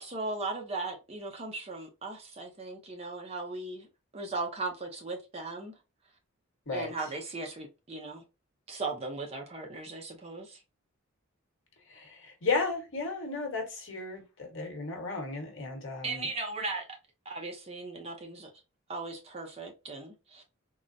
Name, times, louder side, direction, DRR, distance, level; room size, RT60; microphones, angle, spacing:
voice 1, 0.0-3.9 4.1-5.7 6.7-8.2 8.7-10.6 16.0-16.9 17.3-18.5 18.9-20.4, right 3 dB, 25° right, 0.5 m, -37 dB
voice 2, 11.9-16.3, left 3 dB, 60° left, 1.1 m, -34 dB
3.7 x 2.0 x 2.5 m
head